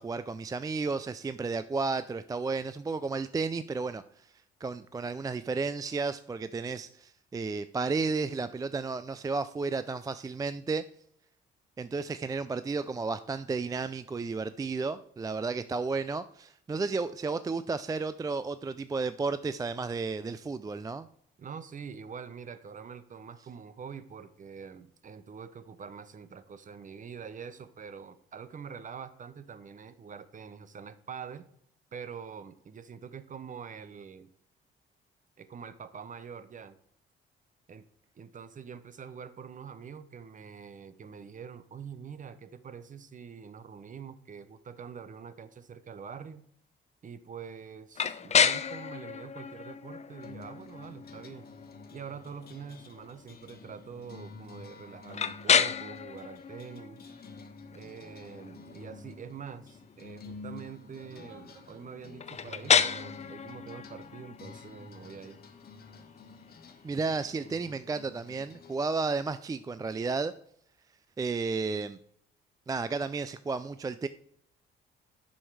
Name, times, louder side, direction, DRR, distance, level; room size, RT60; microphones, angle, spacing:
voice 1, 0.0-4.3 4.6-10.9 11.8-21.1 66.8-70.3 71.2-72.0 72.7-74.1, right 4 dB, 20° right, 13 dB, 0.3 m, -32 dB
voice 2, 21.4-31.4 31.9-34.3 35.4-36.8 37.7-37.8 38.2-46.5 47.0-51.5 51.9-57.1 57.7-65.4, right 6 dB, 40° right, 14 dB, 0.8 m, -45 dB
sound 1, 47.9-67.7, left 7 dB, 35° left, 0.6 m, -33 dB
sound 2, 50.2-68.8, left 4 dB, 50° left, 1.3 m, -50 dB
sound 3, 56.5-57.4 58.5-59.1 60.5-62.2 62.9-63.4 64.6-65.0, right 6 dB, 70° right, 2.7 m, -58 dB
7.7 x 6.4 x 4.8 m, 0.67 s
cardioid pair, 90°, 20 cm